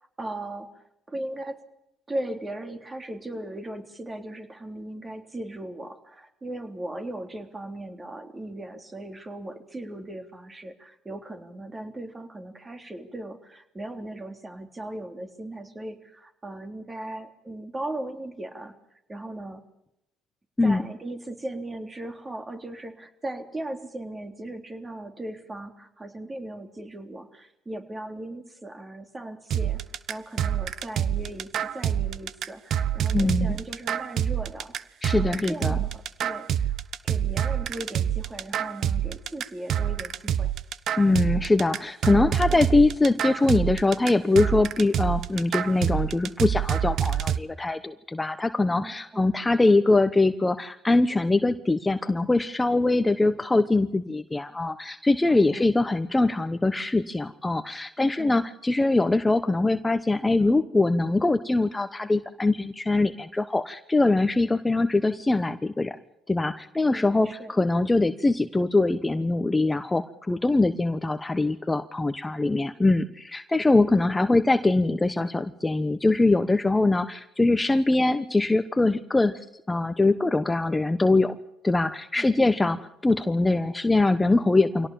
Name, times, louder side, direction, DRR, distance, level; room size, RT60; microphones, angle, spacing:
voice 1, 0.0-1.6 2.1-18.8 19.1-19.6 20.6-29.8 30.1-34.8 35.2-36.8 37.0-40.5 42.5-42.7 48.7-49.3 55.3-55.7 58.0-58.4 66.9-67.5 74.0-74.3 82.2-82.7, right 1 dB, 25° right, 7 dB, 3.5 m, -38 dB
sound 1, 29.5-47.4, right 10 dB, 60° right, 1.0 m, -27 dB
voice 2, 33.1-33.5 35.0-35.8 41.0-66.0 66.3-79.3 79.7-81.3 81.6-82.8 83.0-84.9, left 2 dB, 15° left, 10 dB, 1.2 m, -23 dB
25.0 x 18.0 x 7.4 m, 0.81 s
hypercardioid pair, 65°, 0 cm